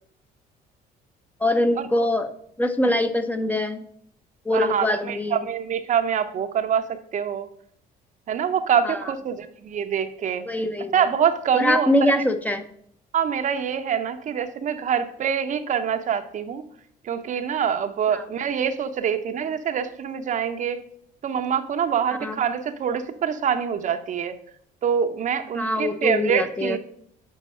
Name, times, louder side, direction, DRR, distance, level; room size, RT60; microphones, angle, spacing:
voice 1, 1.4-2.3 2.6-3.8 4.5-5.5 8.8-9.0 10.5-11.1 11.5-12.6 18.1-18.2 22.2-22.4 25.5-26.8, left 1 dB, 10° left, 8 dB, 0.6 m, -23 dB
voice 2, 4.5-7.5 8.3-10.4 10.9-12.1 13.1-16.6 17.0-20.8 21.2-24.4 24.8-26.8, right 7 dB, 45° right, 9 dB, 0.7 m, -25 dB
6.4 x 5.3 x 5.5 m, 0.66 s
cardioid pair, 110°, 17 cm